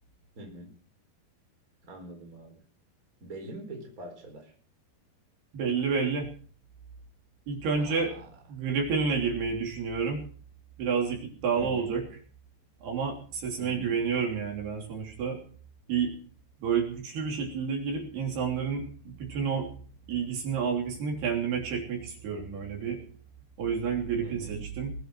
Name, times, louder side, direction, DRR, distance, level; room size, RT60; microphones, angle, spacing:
voice 1, 0.4-0.7 1.9-2.6 3.2-4.5 7.6-8.3 11.5-11.9 13.6-14.0 24.2-24.6, right 1 dB, 20° right, 2 dB, 4.1 m, -44 dB
voice 2, 5.5-6.3 7.5-8.1 8.5-10.2 10.8-12.0 12.8-15.4 15.9-16.1 16.6-19.7 20.1-23.0 23.6-24.9, right 6 dB, 60° right, 1 dB, 5.2 m, -30 dB
21.0 x 9.9 x 6.2 m, 0.44 s
omnidirectional pair, 5.3 m